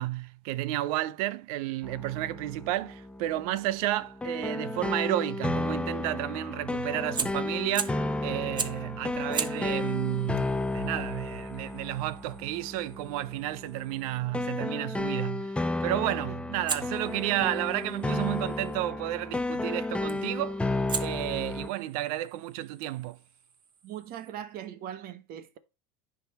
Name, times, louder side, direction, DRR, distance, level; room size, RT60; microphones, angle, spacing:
voice 1, 0.0-20.6 21.0-23.2, right 15 dB, 80° right, 0.6 m, -32 dB
sound 1, 1.8-21.7, left 2 dB, 5° left, 0.4 m, -33 dB
Fire, 7.1-8.1 8.6-8.9 9.3-14.2 16.7-18.8 20.1-20.4 20.9-24.3, right 6 dB, 25° right, 0.9 m, -39 dB
voice 2, 23.8-25.6, right 10 dB, 55° right, 1.2 m, -40 dB
10.0 x 3.8 x 4.2 m
supercardioid pair, 115°, 19 cm